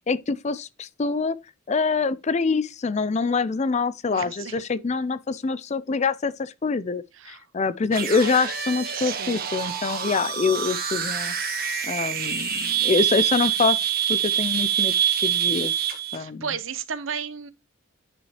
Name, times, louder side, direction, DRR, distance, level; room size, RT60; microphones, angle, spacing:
voice 1, 0.1-1.4 1.7-11.3 11.8-13.8 14.1-14.9 15.2-16.4, left 4 dB, 35° left, 0.4 m, -25 dB
voice 2, 4.1-4.6 7.1-7.5 8.9-9.4 16.1-17.5, right 7 dB, 75° right, 0.8 m, -33 dB
sound 1, 7.9-16.2, right 9 dB, 45° right, 1.4 m, -26 dB
9.3 x 5.8 x 3.0 m
head